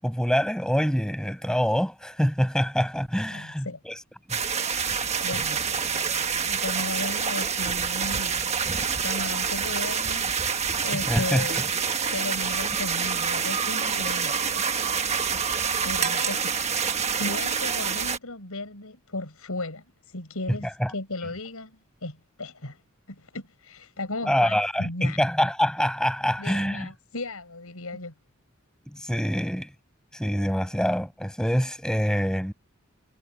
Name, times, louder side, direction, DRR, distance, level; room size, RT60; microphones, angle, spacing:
voice 1, 0.0-4.0 11.1-11.4 20.8-20.9 24.2-26.9 28.9-29.7 30.1-32.5, equal, 5° left, 7.8 m, -25 dB
voice 2, 3.3-3.8 5.2-5.6 6.5-10.3 10.8-11.7 12.1-14.7 15.8-22.8 23.1-25.2 26.4-28.1, left 2 dB, 85° left, 5.8 m, -36 dB
sound 1, 4.3-18.2, right 6 dB, 30° right, 1.4 m, -27 dB
head